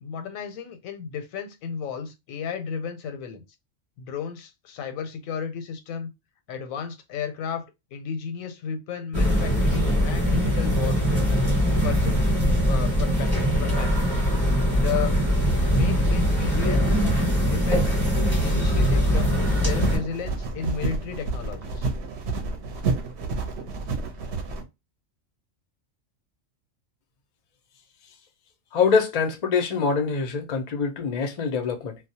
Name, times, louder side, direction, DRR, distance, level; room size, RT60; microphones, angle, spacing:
voice 1, 0.0-3.4 4.0-6.1 6.5-11.3 11.8-12.2 12.7-13.3 13.6-14.3 14.7-15.2 15.7-17.1 17.4-18.0 18.4-21.9, left 7 dB, 85° left, 1.0 m, -33 dB
sound 1, 9.1-20.0, equal, 25° right, 0.8 m, -22 dB
sound 2, 19.1-24.6, right 3 dB, 65° right, 0.8 m, -30 dB
voice 2, 28.7-32.0, left 5 dB, 55° left, 0.4 m, -24 dB
2.3 x 2.0 x 2.6 m
omnidirectional pair, 1.4 m